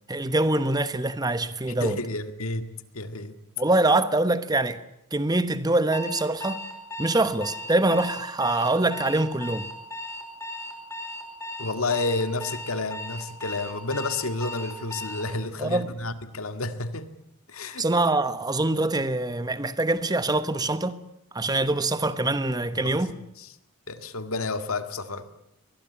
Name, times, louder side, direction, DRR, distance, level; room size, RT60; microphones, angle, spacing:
voice 1, 0.1-2.0 3.6-4.8 5.1-6.6 7.0-9.7 15.6-15.9 17.8-21.0 21.3-23.2, right 2 dB, 20° right, 1.1 m, -24 dB
voice 2, 1.8-2.6 2.9-3.4 11.6-17.1 17.5-17.9 22.7-23.0 23.4-23.5 23.9-25.3, left 3 dB, 85° left, 1.9 m, -30 dB
Alarm, 5.9-15.3, left 1 dB, 15° left, 5.1 m, -37 dB
23.0 x 21.0 x 8.6 m
head